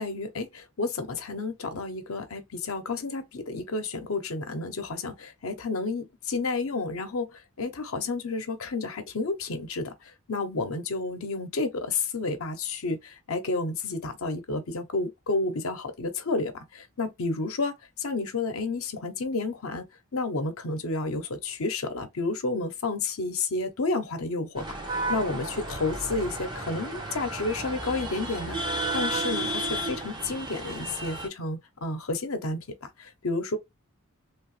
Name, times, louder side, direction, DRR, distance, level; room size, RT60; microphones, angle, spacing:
voice 1, 0.0-9.9 10.3-19.9 20.1-32.6 33.0-33.6, left 3 dB, 90° left, 0.8 m, -31 dB
sound 1, 24.5-31.3, right 1 dB, 20° right, 1.2 m, -33 dB
3.2 x 2.9 x 3.1 m
head